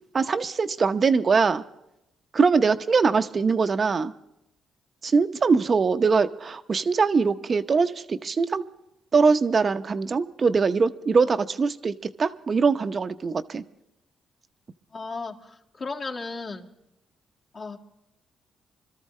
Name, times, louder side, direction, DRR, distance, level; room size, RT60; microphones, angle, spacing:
voice 1, 0.1-1.6 2.3-4.1 5.0-8.6 9.1-13.6, right 5 dB, 40° right, 10 dB, 0.8 m, -22 dB
voice 2, 14.9-15.3 15.8-16.6 17.5-17.8, left 3 dB, 40° left, 0 dB, 2.0 m, -34 dB
25.5 x 13.5 x 3.2 m, 0.84 s
cardioid pair, 90°, 0 cm